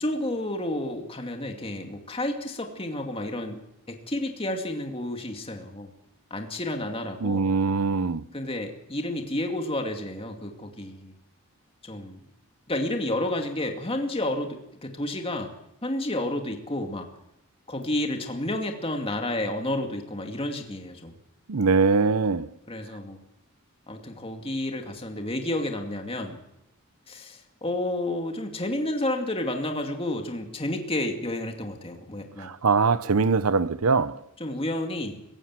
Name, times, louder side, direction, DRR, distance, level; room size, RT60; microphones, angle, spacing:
voice 1, 0.0-3.6 3.9-5.9 6.3-7.5 8.3-11.1 11.8-12.2 12.7-15.5 15.8-17.1 17.7-21.1 22.7-23.2 23.9-26.4 27.1-32.5 34.4-35.2, left 1 dB, 25° left, 2.3 m, -30 dB
voice 2, 7.2-8.2 21.5-22.5 32.4-34.2, right 4 dB, 80° right, 0.8 m, -22 dB
26.0 x 15.5 x 7.5 m
head